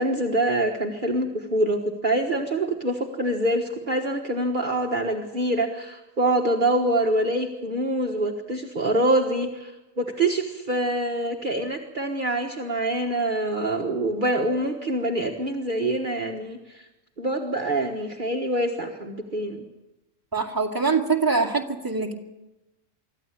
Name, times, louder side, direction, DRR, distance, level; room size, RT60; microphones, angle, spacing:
voice 1, 0.0-9.7 10.0-16.8 17.2-19.6, right 1 dB, 40° right, 1 dB, 1.6 m, -25 dB
voice 2, 20.3-22.1, right 4 dB, 15° right, 1 dB, 2.2 m, -24 dB
24.5 x 14.0 x 8.7 m, 1.0 s
omnidirectional pair, 1.3 m